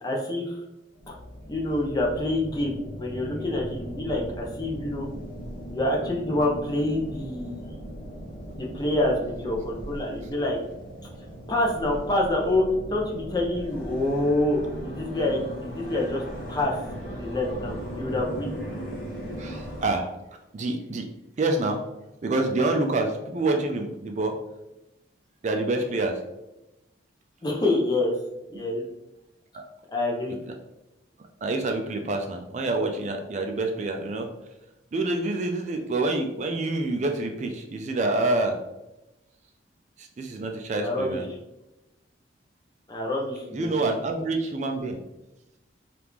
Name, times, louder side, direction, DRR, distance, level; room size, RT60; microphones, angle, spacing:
voice 1, 0.0-0.6 1.1-1.2 1.5-5.1 5.7-7.7 8.5-10.6 11.5-12.6 12.9-16.2 16.5-16.8 17.1-18.5 27.4-28.1 28.5-28.8 29.9-30.4 40.8-41.2 42.9-43.9, left 1 dB, 20° left, -1 dB, 0.6 m, -27 dB
sound 1, 0.9-19.9, equal, 50° left, 0.8 m, -38 dB
voice 2, 19.4-20.1 20.5-21.1 21.4-21.8 22.2-24.4 25.4-26.2 29.5-29.7 31.4-34.3 34.9-38.6 40.0-41.2 43.5-45.0, right 2 dB, 40° right, 4 dB, 0.3 m, -27 dB
2.9 x 2.4 x 3.5 m, 0.95 s
head